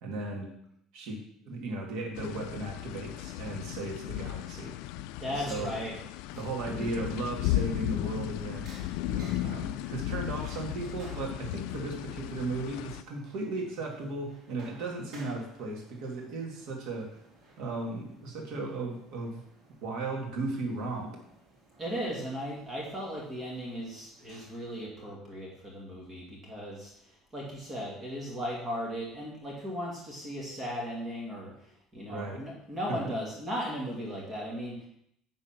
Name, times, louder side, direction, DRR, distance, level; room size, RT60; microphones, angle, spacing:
voice 1, 0.0-0.5 0.9-1.2 1.5-4.7 5.4-5.8 6.4-8.7 9.1-17.2 17.6-19.4 19.8-21.1 32.1-32.4 32.9-33.0, right 2 dB, 65° right, 0 dB, 2.3 m, -36 dB
sound 1, 2.1-13.0, left 15 dB, 75° left, 0.3 m, -35 dB
voice 2, 5.2-5.9 6.3-6.4 21.8-34.9, equal, 15° right, -3 dB, 1.9 m, -37 dB
sound 2, 7.9-24.8, right 2 dB, 35° right, 2.5 m, -56 dB
9.9 x 4.0 x 5.9 m, 0.72 s
cardioid pair, 175°, 0 cm